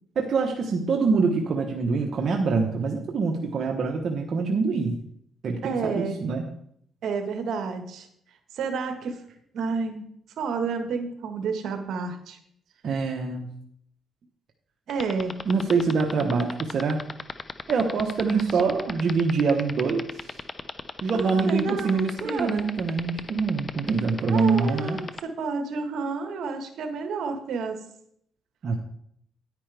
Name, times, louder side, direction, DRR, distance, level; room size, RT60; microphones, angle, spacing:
voice 1, 0.2-5.0 5.4-6.5 12.8-13.5 15.5-17.0 17.7-20.4 21.0-25.0 28.6-28.7, right 4 dB, 55° right, 2 dB, 1.1 m, -25 dB
voice 2, 5.6-6.2 7.0-8.1 8.5-9.2 9.5-10.1 10.4-12.4 14.9-15.3 18.3-18.6 19.0-19.2 21.1-22.7 24.3-27.8, right 4 dB, 70° right, 6 dB, 1.4 m, -30 dB
sound 1, 14.9-25.2, left 4 dB, 35° left, 0.7 m, -34 dB
9.9 x 9.7 x 3.4 m, 0.69 s
cardioid pair, 90°, 0 cm